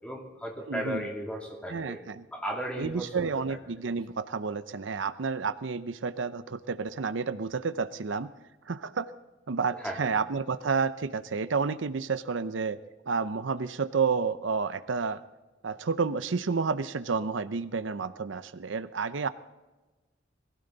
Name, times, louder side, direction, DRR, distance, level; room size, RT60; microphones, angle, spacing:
voice 1, 0.0-2.0 2.3-3.6 9.7-10.1, equal, 5° left, 0 dB, 2.8 m, -36 dB
voice 2, 0.7-1.1 1.7-2.2 2.8-8.3 8.7-9.1 9.5-12.8 13.1-15.2 15.6-19.3, right 5 dB, 75° right, 13 dB, 0.6 m, -30 dB
21.5 x 16.0 x 4.0 m, 1.1 s
head